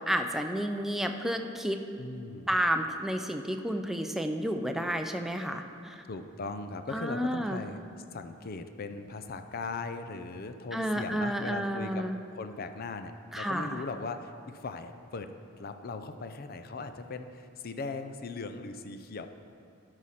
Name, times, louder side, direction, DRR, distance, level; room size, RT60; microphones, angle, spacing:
voice 1, 0.0-1.8 2.5-6.0 6.9-7.6 10.7-12.2 13.3-13.8, equal, ahead, 5 dB, 0.4 m, -31 dB
voice 2, 2.0-2.5 6.1-7.8 8.1-15.3 15.6-19.3, left 3 dB, 45° left, 8 dB, 0.5 m, -39 dB
12.5 x 4.9 x 5.7 m, 2.4 s
head